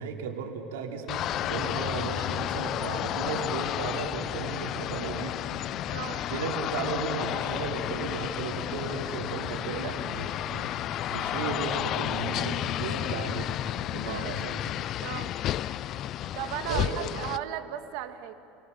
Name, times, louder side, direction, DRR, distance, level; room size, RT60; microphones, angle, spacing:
voice 1, 0.0-5.4 6.3-10.6 11.1-13.5 13.9-14.5 16.7-17.2, right 6 dB, 90° right, 1 dB, 3.1 m, -35 dB
sound 1, 1.1-17.4, left 12 dB, 45° left, 0.5 m, -32 dB
voice 2, 5.9-6.3 14.1-14.4 15.0-15.3 16.3-18.3, right 11 dB, 70° right, 8 dB, 1.6 m, -36 dB
29.0 x 18.5 x 6.8 m, 2.6 s
supercardioid pair, 120°, 0 cm